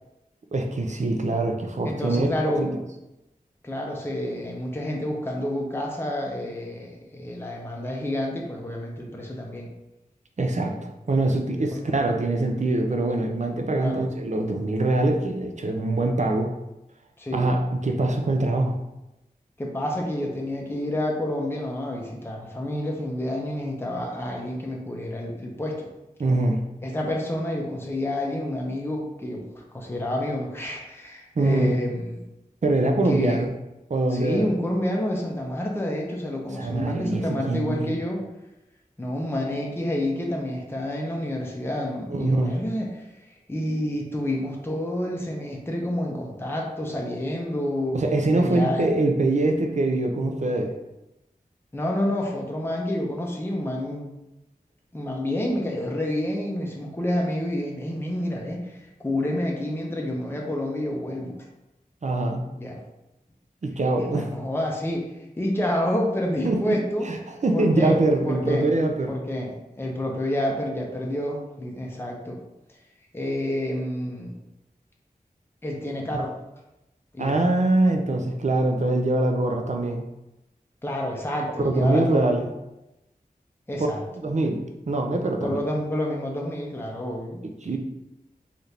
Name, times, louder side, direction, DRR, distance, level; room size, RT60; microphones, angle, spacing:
voice 1, 0.5-2.3 2.6-2.7 10.4-10.7 11.1-16.5 17.3-18.8 26.2-26.6 31.4-31.8 32.6-33.5 33.9-34.5 36.6-37.9 42.1-42.6 47.9-50.8 62.0-62.5 63.6-64.3 66.4-69.1 76.1-76.2 77.2-80.0 81.6-82.5 84.2-85.6 87.4-87.8, right 2 dB, 50° right, 4 dB, 0.4 m, -23 dB
voice 2, 1.8-2.6 3.6-9.7 10.6-10.8 11.7-11.8 13.8-14.0 17.2-17.5 19.6-25.9 26.8-32.2 33.0-33.4 34.1-38.2 39.0-48.0 48.3-48.9 51.7-54.2 54.9-61.4 62.5-62.8 64.0-67.1 67.5-67.9 68.2-68.7 69.1-72.4 73.1-74.3 75.6-76.3 77.1-77.5 80.8-82.3 83.7-84.0 85.4-87.4, left 1 dB, 15° left, -1 dB, 0.5 m, -29 dB
3.3 x 2.4 x 2.8 m, 0.94 s
wide cardioid pair, 55°, 16 cm